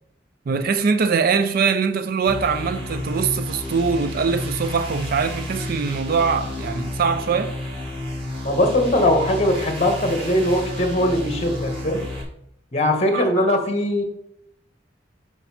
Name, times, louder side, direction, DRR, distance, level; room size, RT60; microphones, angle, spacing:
voice 1, 0.5-7.5 13.1-13.3, right 5 dB, 50° right, 0.4 m, -22 dB
sound 1, 2.3-12.2, left 1 dB, 30° right, 1.9 m, -31 dB
voice 2, 8.4-12.0 12.7-14.0, left 1 dB, 35° left, 1.3 m, -20 dB
5.9 x 4.2 x 5.7 m
head